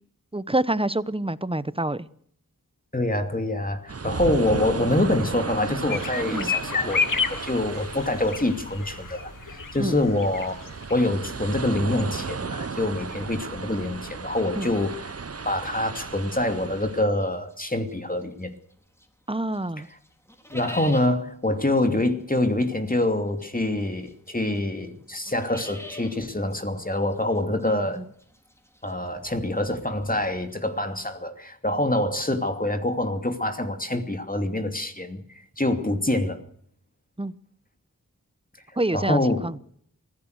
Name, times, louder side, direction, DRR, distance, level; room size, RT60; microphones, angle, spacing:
voice 1, 0.3-2.1 6.3-6.5 9.8-10.0 14.6-14.7 19.3-19.9 28.0-28.1 37.2-37.3 38.8-39.5, right 1 dB, 15° right, 1.0 m, -27 dB
voice 2, 2.9-7.0 7.3-10.6 10.9-15.1 15.4-18.5 20.5-28.0 28.8-35.2 35.6-36.4 38.9-39.5, left 1 dB, 25° left, 2.8 m, -25 dB
sound 1, 3.9-17.0, right 5 dB, 45° right, 0.9 m, -35 dB
sound 2, 5.9-11.0 11.3-11.4 11.7-11.8, left 5 dB, 70° left, 1.3 m, -30 dB
sound 3, 17.2-19.2 19.5-31.0, equal, 10° left, 4.0 m, -46 dB
24.5 x 16.5 x 6.6 m
wide cardioid pair, 50°, 34 cm